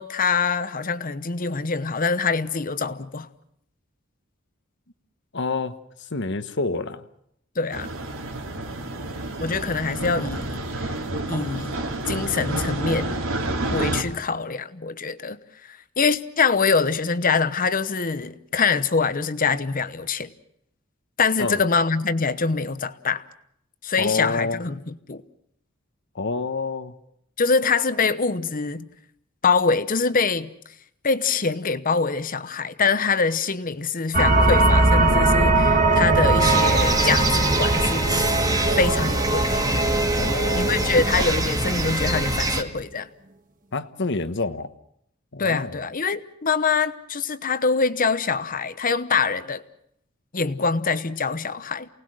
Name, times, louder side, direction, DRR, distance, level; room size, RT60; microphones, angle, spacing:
voice 1, 0.0-3.3 7.6-7.9 9.4-10.6 11.3-11.8 12.1-13.2 13.7-15.4 15.7-20.3 21.2-23.2 23.8-25.2 27.4-28.9 29.4-30.5 31.0-37.3 37.6-38.2 38.7-39.9 40.5-43.1 45.4-49.6 50.3-51.9, left 4 dB, 45° left, 1.0 m, -24 dB
voice 2, 5.3-5.8 6.1-7.0 21.4-21.6 24.0-24.6 26.1-26.9 40.1-41.1 43.7-44.7 45.3-45.8, left 3 dB, 60° left, 1.2 m, -28 dB
sound 1, 7.7-14.0, right 2 dB, 80° right, 3.0 m, -29 dB
sound 2, 34.1-42.2, right 2 dB, 40° right, 2.0 m, -21 dB
sound 3, 36.4-42.6, right 1 dB, 20° right, 1.8 m, -24 dB
28.5 x 19.0 x 6.3 m
head